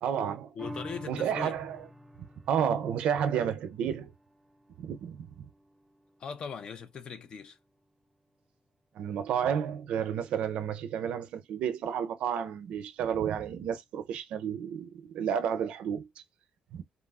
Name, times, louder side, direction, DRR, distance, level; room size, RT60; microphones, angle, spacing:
voice 1, 0.0-0.5 1.1-1.8 2.5-4.1 4.8-5.5 9.0-16.1 16.7-16.8, right 8 dB, 75° right, 0.5 m, -31 dB
voice 2, 0.6-1.6 6.2-7.6, left 6 dB, 50° left, 0.6 m, -40 dB
sound 1, 0.6-7.3 7.7-7.8, equal, 10° right, 0.4 m, -49 dB
3.0 x 2.3 x 2.3 m
cardioid pair, 105°, 2 cm